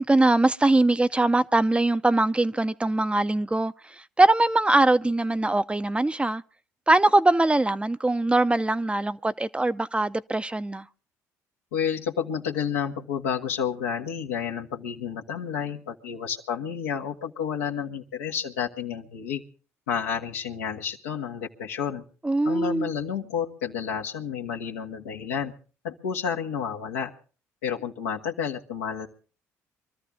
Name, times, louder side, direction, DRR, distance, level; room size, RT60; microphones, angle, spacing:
voice 1, 0.0-6.4 6.9-10.9 22.2-22.9, right 2 dB, 15° right, 0.7 m, -22 dB
voice 2, 11.7-19.4 19.9-22.0 22.4-25.5 25.8-27.1 27.6-29.1, left 7 dB, 85° left, 1.6 m, -30 dB
24.0 x 13.5 x 3.6 m
hypercardioid pair, 55°, 8 cm